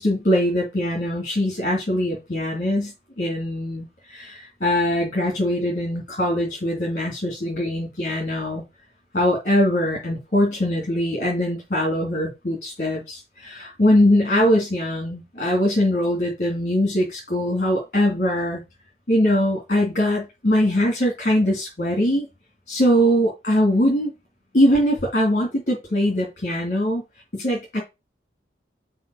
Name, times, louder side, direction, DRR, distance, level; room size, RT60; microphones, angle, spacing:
voice 1, 0.0-8.6 9.1-18.6 19.1-22.3 22.7-24.1 24.5-27.0 27.3-27.8, left 1 dB, 45° left, 2.4 m, -22 dB
5.5 x 4.9 x 6.2 m
head